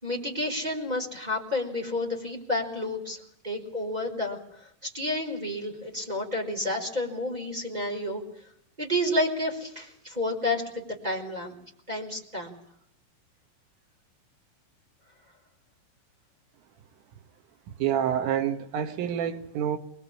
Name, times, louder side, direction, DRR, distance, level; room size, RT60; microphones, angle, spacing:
voice 1, 0.0-3.2 3.4-4.4 4.8-8.2 8.8-11.5 11.9-12.5, left 1 dB, 10° right, 3.9 m, -30 dB
voice 2, 17.8-19.8, right 9 dB, 85° right, 4.1 m, -27 dB
25.0 x 21.0 x 8.7 m
omnidirectional pair, 5.6 m